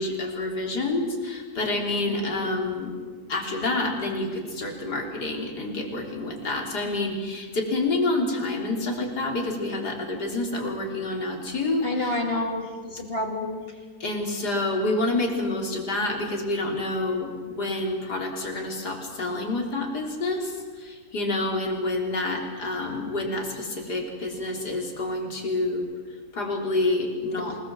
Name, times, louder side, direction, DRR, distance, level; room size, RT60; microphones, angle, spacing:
voice 1, 0.0-2.9 3.3-12.2 14.0-25.9 26.3-27.5, left 2 dB, 75° left, 1 dB, 4.3 m, -28 dB
voice 2, 2.1-2.4 11.8-13.6 27.3-27.6, left 2 dB, 35° left, 3 dB, 3.0 m, -30 dB
27.5 x 19.5 x 7.6 m, 1.5 s
omnidirectional pair, 1.8 m